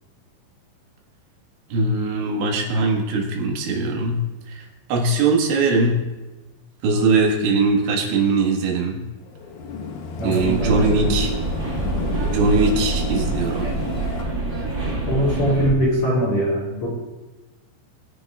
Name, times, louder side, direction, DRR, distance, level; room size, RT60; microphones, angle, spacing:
voice 1, 1.7-6.1 6.8-9.1 10.2-11.3 12.3-13.8, right 3 dB, 80° right, 1 dB, 3.9 m, -21 dB
sound 1, 9.2-14.2, left 4 dB, 80° left, 3.6 m, -34 dB
voice 2, 10.2-11.2 11.7-11.8 15.1-16.9, equal, 40° left, -3 dB, 3.8 m, -22 dB
sound 2, 10.4-15.7, right 2 dB, 60° right, 0.7 m, -25 dB
22.0 x 10.0 x 2.4 m, 1.1 s
omnidirectional pair, 5.3 m